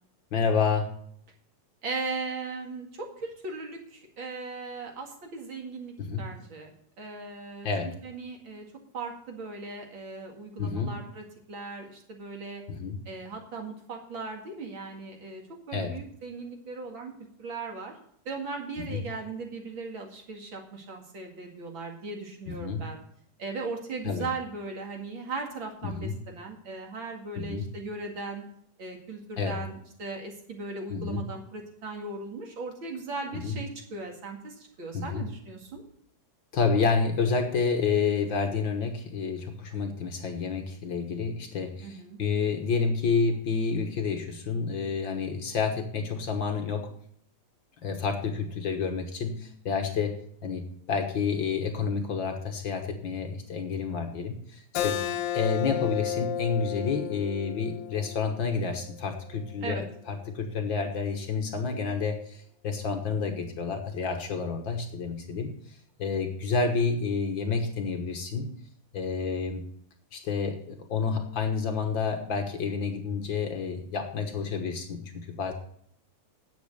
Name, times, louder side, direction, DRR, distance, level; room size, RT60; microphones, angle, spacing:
voice 1, 0.3-1.0 6.0-6.3 7.6-8.0 10.6-11.0 12.7-13.0 15.7-16.0 18.8-19.1 22.5-22.9 24.0-24.3 25.8-26.2 27.4-27.7 29.4-29.6 30.9-31.3 33.3-33.6 34.9-35.3 36.5-46.9 47.8-55.0 55.3-65.5 66.0-68.5 68.9-69.6 70.1-75.5, left 5 dB, 55° left, 5 dB, 1.4 m, -29 dB
voice 2, 1.8-6.7 7.0-8.7 8.9-12.6 13.1-15.4 15.7-17.1 17.4-17.9 18.3-23.0 23.4-28.4 28.8-35.8 41.8-42.2 54.9-55.2 59.6-59.8, right 3 dB, 45° right, 2 dB, 2.5 m, -38 dB
Keyboard (musical), 54.8-59.9, left 9 dB, 75° left, 1.9 m, -33 dB
10.0 x 8.0 x 6.6 m, 0.65 s
omnidirectional pair, 3.5 m